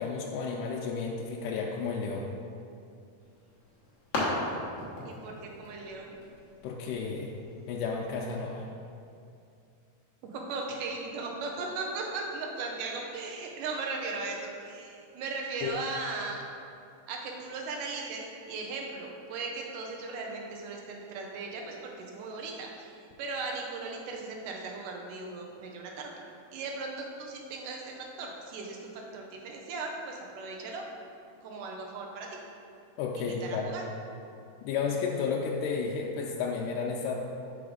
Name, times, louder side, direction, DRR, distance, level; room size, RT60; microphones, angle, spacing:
voice 1, 0.0-2.3 6.6-7.3 7.7-8.7 15.6-15.8 33.0-33.8 34.6-37.2, left 5 dB, 80° left, -1 dB, 2.1 m, -32 dB
sound 1, 3.2-8.3, left 1 dB, 60° left, 1.1 m, -38 dB
voice 2, 5.1-6.1 10.2-16.4 17.1-26.1 26.5-26.9 27.2-30.8 31.4-32.3 33.2-33.8, right 3 dB, 80° right, 0 dB, 2.3 m, -37 dB
5.4 x 4.7 x 5.0 m, 2.5 s
omnidirectional pair, 3.8 m